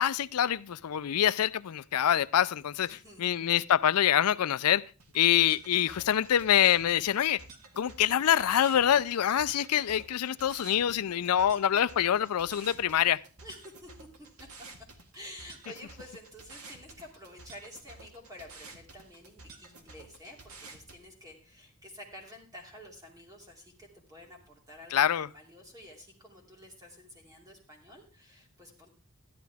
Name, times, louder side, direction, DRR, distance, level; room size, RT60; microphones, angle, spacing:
voice 1, 0.0-4.8 5.1-7.4 7.8-13.2 24.9-25.3, left 10 dB, 80° left, 0.4 m, -25 dB
voice 2, 2.8-3.5 13.4-14.1 14.4-14.7 15.1-28.9, left 1 dB, 15° right, 2.8 m, -50 dB
sound 1, 5.0-21.0, right 3 dB, 80° right, 1.8 m, -51 dB
12.5 x 11.5 x 3.5 m
head